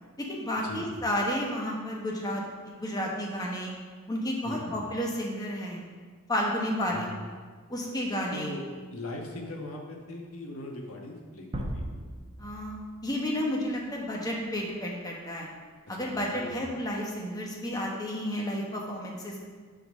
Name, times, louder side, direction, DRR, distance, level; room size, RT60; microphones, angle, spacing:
voice 1, 0.2-3.7 4.1-5.8 6.3-7.1 7.7-8.6 12.4-12.7 13.0-15.5 15.9-19.5, equal, 20° left, -2 dB, 1.2 m, -31 dB
voice 2, 4.4-4.8 6.9-7.1 8.3-8.6 8.9-11.9 15.9-16.7, left 1 dB, 85° left, 0 dB, 1.4 m, -40 dB
sound 1, 11.5-14.0, right 1 dB, 30° right, 1.0 m, -38 dB
10.5 x 4.0 x 6.4 m, 1.6 s
head